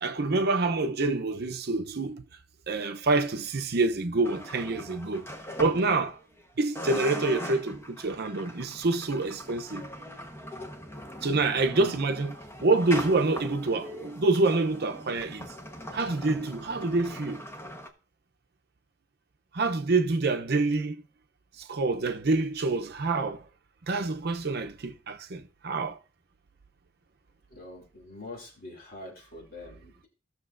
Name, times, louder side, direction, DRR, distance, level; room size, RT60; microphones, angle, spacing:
voice 1, 0.0-2.2 2.7-5.3 5.6-6.2 6.6-9.9 11.2-12.3 12.6-15.5 15.9-17.4 19.5-21.0 21.6-23.4 23.9-26.0, right 3 dB, 60° right, 0.7 m, -27 dB
sound 1, 4.2-6.4 6.8-17.9, equal, 15° left, 1.1 m, -41 dB
voice 2, 27.5-30.1, left 2 dB, 50° left, 2.6 m, -44 dB
16.0 x 6.6 x 2.6 m
head